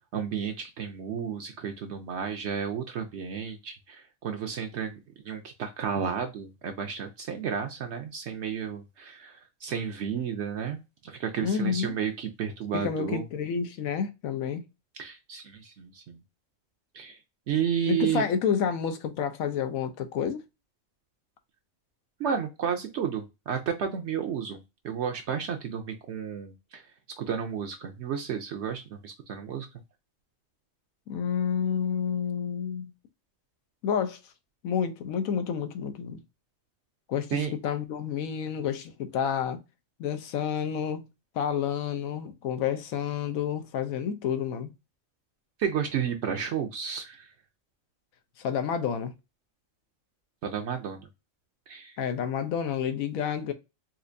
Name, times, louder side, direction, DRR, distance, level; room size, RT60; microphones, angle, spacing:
voice 1, 0.1-5.0 5.2-13.2 15.0-16.2 16.9-17.2 17.5-18.2 22.2-24.6 24.8-26.8 27.2-29.7 37.3-37.5 45.6-47.3 50.4-51.1 51.7-52.0, right 7 dB, 65° right, 0.8 m, -32 dB
voice 2, 11.4-12.0 12.7-14.6 17.9-20.4 31.1-32.9 33.8-34.2 34.6-36.2 37.1-39.6 40.0-41.0 41.3-44.7 48.4-49.1 52.0-53.5, left 7 dB, 90° left, 1.1 m, -29 dB
4.3 x 2.4 x 2.6 m
omnidirectional pair, 1.4 m